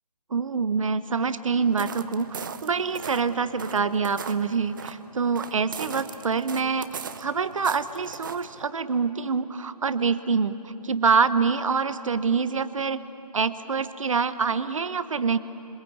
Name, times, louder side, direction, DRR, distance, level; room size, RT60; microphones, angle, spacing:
voice 1, 0.3-13.0 13.3-15.4, right 5 dB, 55° right, 13 dB, 1.2 m, -26 dB
sound 1, 1.6-8.7, right 6 dB, 30° right, 0.8 m, -39 dB
26.5 x 26.0 x 8.2 m, 2.8 s
figure-of-eight pair, 155°, 20 cm